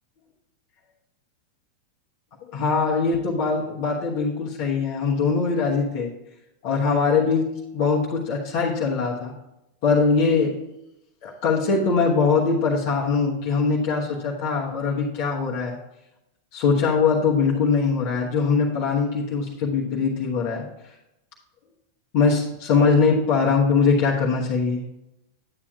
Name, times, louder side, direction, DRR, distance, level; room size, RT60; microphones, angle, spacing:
voice 1, 2.5-6.1 6.6-7.5 7.7-9.3 9.8-10.5 11.2-15.8 16.5-20.7 22.1-24.8, left 5 dB, 45° left, -4 dB, 1.2 m, -22 dB
11.0 x 8.6 x 2.4 m, 0.90 s
figure-of-eight pair, 90°, 0 cm